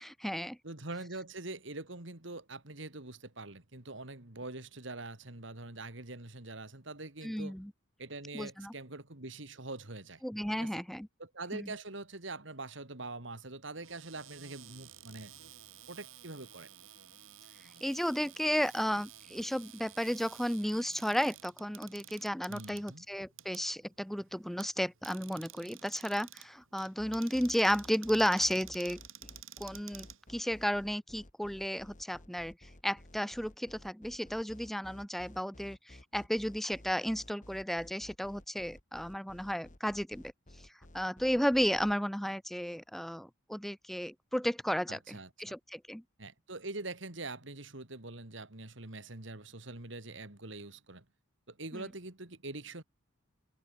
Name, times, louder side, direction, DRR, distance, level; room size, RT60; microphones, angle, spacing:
voice 1, 0.0-0.6 7.2-7.7 8.3-8.7 10.2-11.1 11.5-11.7 17.8-29.0 29.6-32.5 32.8-40.2 40.9-46.0 51.7-51.8, equal, ahead, 0.8 m, -33 dB
voice 2, 0.6-7.6 8.0-10.2 10.5-10.8 11.2-15.3 15.9-16.7 22.5-23.1 44.9-45.5 46.2-51.1 51.5-52.8, right 2 dB, 60° right, 2.8 m, -44 dB
Cupboard open or close, 13.7-30.8, right 11 dB, 80° right, 4.2 m, -53 dB
sound 1, 27.0-41.9, left 1 dB, 40° left, 2.6 m, -54 dB
head